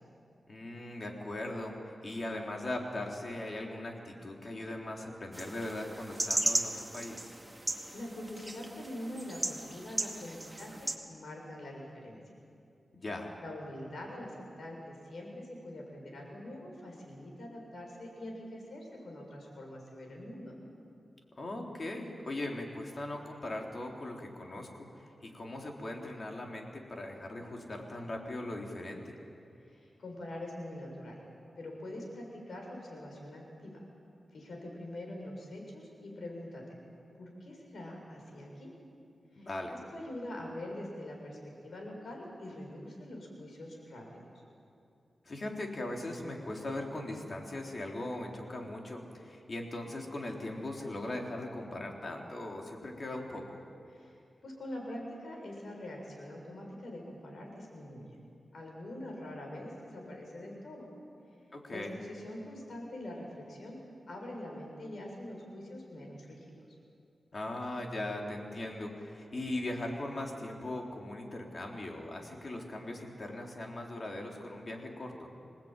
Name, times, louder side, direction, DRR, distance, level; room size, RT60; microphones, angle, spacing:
voice 1, 0.5-7.3 12.9-13.4 21.3-24.9 25.2-29.2 39.4-39.8 45.3-53.6 61.5-61.9 67.3-75.3, left 1 dB, 50° left, 0 dB, 4.0 m, -39 dB
sound 1, 5.3-10.9, right 1 dB, 15° right, 2.1 m, -36 dB
voice 2, 7.5-12.2 13.4-20.6 29.6-31.2 31.6-33.8 34.3-36.6 37.2-38.7 39.3-39.5 39.9-44.2 53.9-54.2 54.4-58.1 58.5-60.9 61.7-63.8 64.1-66.4, left 1 dB, 75° left, 0 dB, 6.8 m, -44 dB
26.5 x 19.5 x 9.2 m, 2.6 s
wide cardioid pair, 80°, 0 cm